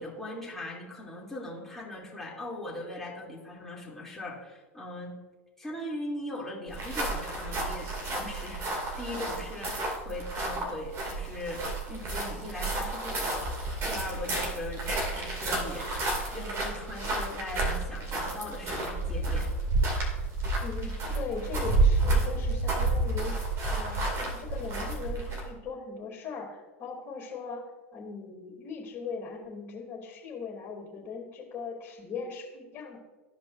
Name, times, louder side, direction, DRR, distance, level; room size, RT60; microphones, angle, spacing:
voice 1, 0.0-5.1 5.6-14.8 15.1-15.9 16.3-19.5, left 1 dB, 5° left, -5 dB, 2.7 m, -40 dB
sound 1, 6.7-25.6, right 2 dB, 35° right, 2.4 m, -30 dB
voice 2, 20.6-23.3 23.7-27.6 27.9-33.0, left 5 dB, 35° left, -9 dB, 2.7 m, -39 dB
14.5 x 5.2 x 2.6 m, 1.2 s
hypercardioid pair, 90°, 7 cm